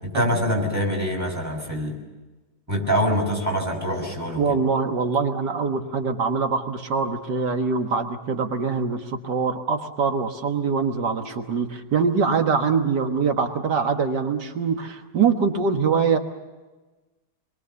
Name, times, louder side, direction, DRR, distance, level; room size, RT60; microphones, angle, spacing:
voice 1, 0.0-1.9 2.7-4.6, equal, 10° right, 1 dB, 5.9 m, -24 dB
voice 2, 4.4-16.2, right 5 dB, 90° right, 5 dB, 2.1 m, -23 dB
27.0 x 22.5 x 7.0 m, 1.2 s
omnidirectional pair, 1.8 m